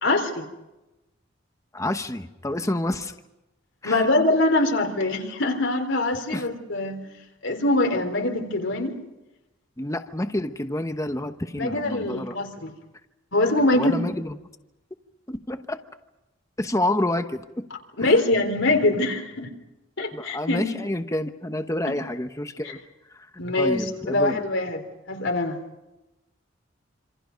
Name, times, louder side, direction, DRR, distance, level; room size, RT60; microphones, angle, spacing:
voice 1, 0.0-0.4 3.8-7.1 7.4-9.0 11.6-12.7 13.3-14.0 18.0-19.5 20.0-20.8 23.4-24.8 25.1-25.6, left 2 dB, 85° left, 4 dB, 3.8 m, -23 dB
voice 2, 1.7-3.1 3.8-4.1 6.3-6.5 9.8-12.4 13.7-14.4 15.3-15.8 16.6-17.7 18.0-18.1 20.1-22.8 23.1-24.4, left 1 dB, 15° left, 8 dB, 1.0 m, -28 dB
27.0 x 27.0 x 5.3 m, 0.98 s
head